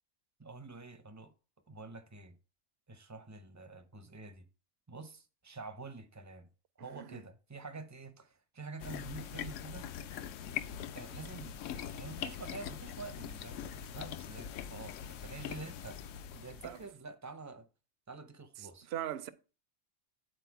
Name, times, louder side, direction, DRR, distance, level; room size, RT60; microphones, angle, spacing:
voice 1, 0.4-1.3 1.7-2.4 2.9-4.5 4.9-6.5 6.8-9.9 10.9-16.0 16.3-17.7 18.1-18.9, right 4 dB, 25° right, 0.4 m, -48 dB
voice 2, 6.8-7.2 16.6-16.8 18.6-19.3, right 11 dB, 65° right, 0.7 m, -41 dB
sound 1, 8.8-16.9, left 9 dB, 75° left, 0.9 m, -42 dB
9.0 x 4.3 x 4.6 m
omnidirectional pair, 1.4 m